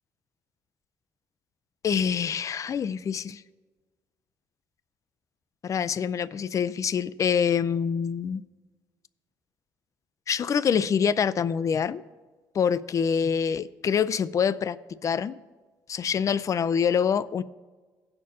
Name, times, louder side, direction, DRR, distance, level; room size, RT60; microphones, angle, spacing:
voice 1, 1.8-3.4 5.6-8.4 10.3-12.0 12.5-15.4 15.9-17.4, left 7 dB, 45° left, 0.4 m, -25 dB
16.5 x 6.5 x 2.9 m
supercardioid pair, 75°, 8 cm